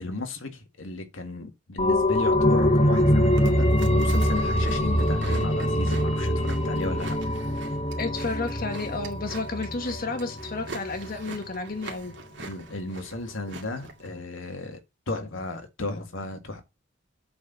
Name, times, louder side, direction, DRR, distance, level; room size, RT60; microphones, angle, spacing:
voice 1, 0.0-7.2 12.4-14.8 15.1-16.6, left 2 dB, 85° left, 2.0 m, -35 dB
sound 1, 1.8-11.1 11.5-11.6, left 1 dB, 30° left, 1.4 m, -24 dB
Chewing mastication, 3.2-14.1, right 3 dB, 70° right, 2.2 m, -44 dB
voice 2, 8.0-12.2, left 3 dB, 50° left, 1.4 m, -31 dB
8.1 x 4.5 x 6.9 m
head